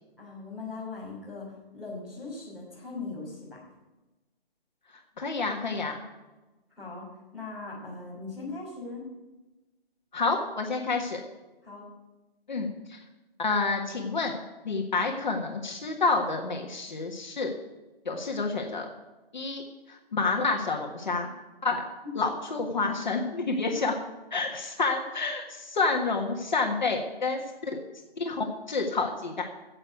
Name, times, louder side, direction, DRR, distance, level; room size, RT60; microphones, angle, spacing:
voice 1, 0.2-3.6 6.7-9.1 11.6-11.9, left 3 dB, ahead, -10 dB, 3.2 m, -40 dB
voice 2, 5.2-6.0 10.1-11.2 12.5-13.0 13.4-14.4 14.6-17.5 18.0-18.9 19.3-19.6 19.9-21.3 21.6-21.8 22.1-23.9 24.3-27.8 28.2-29.4, left 3 dB, 50° left, 2 dB, 1.5 m, -29 dB
11.0 x 8.0 x 9.2 m, 1.1 s
hypercardioid pair, 180°, 30 cm